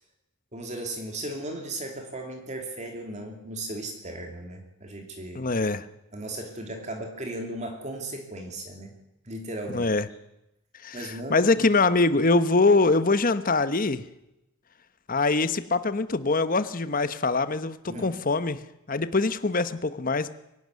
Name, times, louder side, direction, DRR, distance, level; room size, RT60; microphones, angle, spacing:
voice 1, 0.5-5.5 6.1-8.9 9.2-9.9 10.9-11.5 17.9-18.1, right 1 dB, 35° right, 3 dB, 2.9 m, -36 dB
voice 2, 5.3-5.8 9.7-10.0 10.8-14.0 15.1-18.6 18.9-20.3, left 3 dB, 40° left, 13 dB, 1.0 m, -23 dB
23.0 x 12.0 x 9.5 m, 0.88 s
head